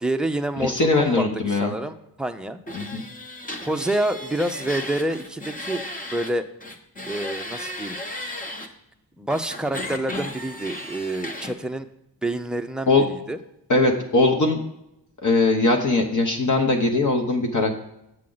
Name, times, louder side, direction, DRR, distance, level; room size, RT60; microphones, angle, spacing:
voice 1, 0.0-1.2 1.5-2.6 3.6-6.5 7.1-8.0 9.2-11.9 12.2-13.4, right 1 dB, ahead, 6 dB, 0.4 m, -27 dB
voice 2, 0.6-1.7 2.7-3.0 12.9-13.1 13.7-14.6 15.2-17.8, left 3 dB, 45° left, 2 dB, 1.1 m, -20 dB
sound 1, 2.7-6.3 6.6-8.7 9.3-11.5, left 1 dB, 20° left, 1.0 m, -35 dB
7.6 x 7.4 x 3.9 m, 0.82 s
cardioid pair, 115°, 43 cm